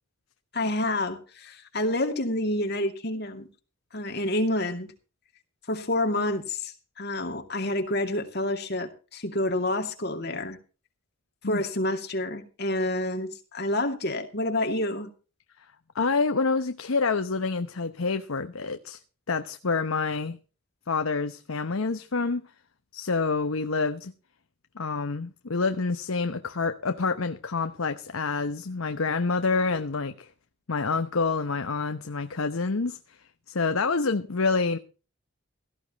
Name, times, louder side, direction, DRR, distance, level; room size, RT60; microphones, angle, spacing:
voice 1, 0.5-3.5 3.9-4.9 5.7-10.6 11.4-15.1, left 1 dB, 50° left, 2.4 m, -28 dB
voice 2, 15.9-19.0 19.3-20.4 20.9-22.5 22.9-24.1 24.8-30.3 30.7-33.0 33.5-34.8, left 4 dB, 80° left, 0.9 m, -27 dB
17.0 x 14.5 x 3.0 m
head